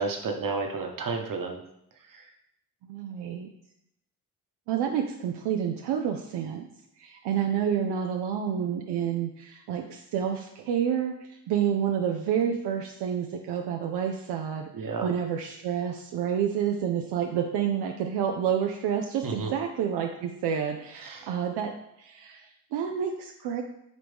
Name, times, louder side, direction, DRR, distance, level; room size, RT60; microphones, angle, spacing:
voice 1, 0.0-1.6 2.1-2.2 14.7-15.1 19.2-19.5 21.0-21.3, right 4 dB, 55° right, 3 dB, 1.2 m, -31 dB
voice 2, 2.9-3.5 4.7-6.7 7.0-21.7 22.0-23.6, right 8 dB, 85° right, 3 dB, 0.6 m, -29 dB
9.0 x 3.1 x 3.5 m, 0.77 s
supercardioid pair, 50°, 39 cm